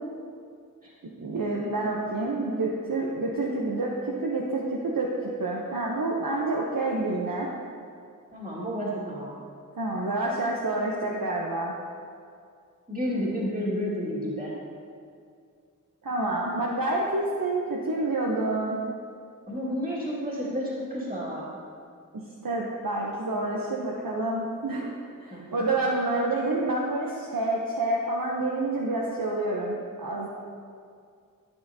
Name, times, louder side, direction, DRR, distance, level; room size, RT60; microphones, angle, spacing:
voice 1, 1.2-7.5 9.8-11.7 16.0-18.8 22.1-24.9 25.2-30.3, right 2 dB, 85° right, -3 dB, 0.8 m, -28 dB
voice 2, 8.3-9.4 12.9-14.5 19.5-21.5 25.3-25.5, equal, 25° right, -8 dB, 2.0 m, -31 dB
12.5 x 8.1 x 2.7 m, 2.3 s
wide cardioid pair, 40°, 33 cm